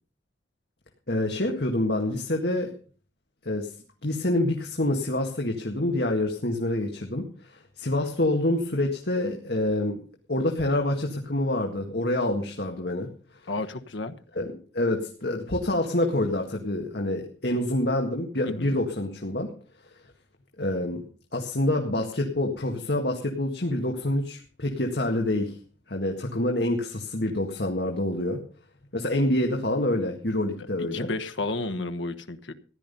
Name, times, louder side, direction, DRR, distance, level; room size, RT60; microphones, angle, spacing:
voice 1, 1.1-2.7 3.4-3.7 4.0-10.0 10.3-13.1 14.4-19.5 20.6-21.0 21.3-25.6 25.9-28.4 28.9-31.1, left 1 dB, 60° left, 2 dB, 1.9 m, -27 dB
voice 2, 13.5-14.1 18.5-18.7 30.6-32.5, left 2 dB, 85° left, 8 dB, 1.2 m, -32 dB
15.0 x 11.0 x 5.4 m, 0.40 s
head